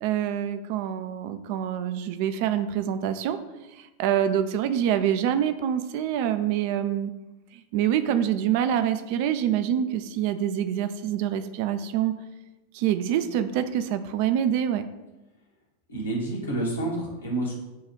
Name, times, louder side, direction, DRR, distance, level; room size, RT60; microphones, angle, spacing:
voice 1, 0.0-3.4 3.8-7.1 7.5-12.1 12.7-14.9, right 10 dB, 45° right, 10 dB, 0.3 m, -26 dB
voice 2, 15.9-17.5, right 2 dB, 75° left, -3 dB, 1.2 m, -29 dB
6.8 x 2.3 x 3.1 m, 1.1 s
figure-of-eight pair, 90°, 0 cm